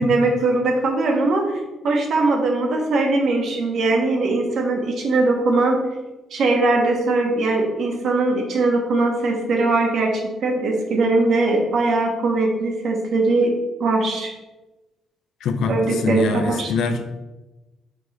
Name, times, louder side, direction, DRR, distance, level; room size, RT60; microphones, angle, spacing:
voice 1, 0.0-5.8 6.3-13.5 13.8-14.3 15.7-16.7, right 2 dB, 65° right, 1 dB, 1.2 m, -20 dB
voice 2, 15.4-15.7 16.0-17.0, left 4 dB, 80° left, 7 dB, 0.6 m, -23 dB
6.0 x 4.7 x 3.3 m, 1.1 s
cardioid pair, 90°, 0 cm